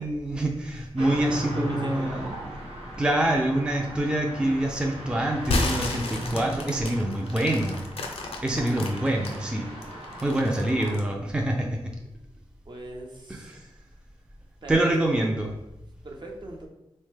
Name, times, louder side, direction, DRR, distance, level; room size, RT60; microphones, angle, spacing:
voice 1, 0.0-2.3 3.0-7.8 8.4-9.7 10.2-11.9 13.3-13.6 14.7-15.5, right 1 dB, 10° right, 1 dB, 0.4 m, -26 dB
voice 2, 1.0-2.3 12.7-13.7 14.6-15.5 16.0-16.7, right 1 dB, 50° right, 0 dB, 0.6 m, -40 dB
sound 1, 1.0-10.9, right 1 dB, 90° right, 0.7 m, -38 dB
sound 2, 5.4-9.4 9.8-11.1, left 2 dB, 75° left, 0.5 m, -31 dB
3.1 x 2.1 x 3.2 m, 0.93 s
cardioid pair, 60°, 10 cm